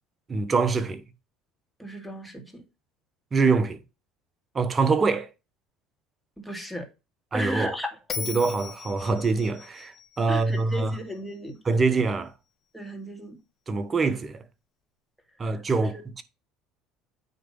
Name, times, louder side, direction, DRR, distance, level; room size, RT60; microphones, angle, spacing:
voice 1, 0.3-1.0 3.3-3.8 4.5-5.3 7.3-7.7 8.2-11.0 11.6-12.3 13.7-14.4 15.4-16.2, right 4 dB, 30° right, 1.0 m, -24 dB
voice 2, 1.8-2.6 6.4-6.9 7.3-8.0 10.3-11.6 12.7-13.4, equal, ahead, 2.2 m, -34 dB
Bell, 8.1-11.3, left 6 dB, 35° left, 1.5 m, -39 dB
9.2 x 3.4 x 5.4 m
supercardioid pair, 95°, 0 cm